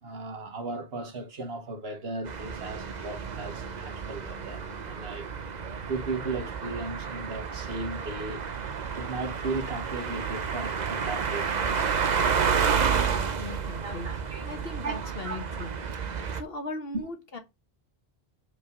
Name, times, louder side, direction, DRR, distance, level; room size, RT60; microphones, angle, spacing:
voice 1, 0.0-5.3 5.9-8.4 8.9-12.0 13.8-14.4 14.8-15.7 16.9-17.0, right 3 dB, 75° right, 1.6 m, -36 dB
sound 1, 2.3-16.4, right 6 dB, 50° right, 0.8 m, -30 dB
voice 2, 13.4-14.1 14.4-15.8 16.3-17.4, left 2 dB, 70° left, 1.6 m, -38 dB
5.0 x 5.0 x 5.1 m
omnidirectional pair, 1.0 m